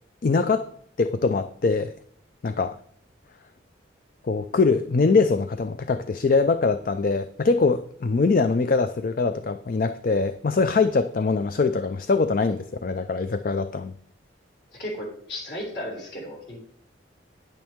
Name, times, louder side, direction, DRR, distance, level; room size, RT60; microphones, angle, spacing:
voice 1, 0.2-0.7 1.0-1.9 2.4-2.8 4.2-13.9, left 4 dB, 45° left, 10 dB, 0.4 m, -23 dB
voice 2, 14.7-16.6, equal, 60° left, -4 dB, 4.9 m, -34 dB
10.0 x 8.9 x 3.6 m, 0.62 s
head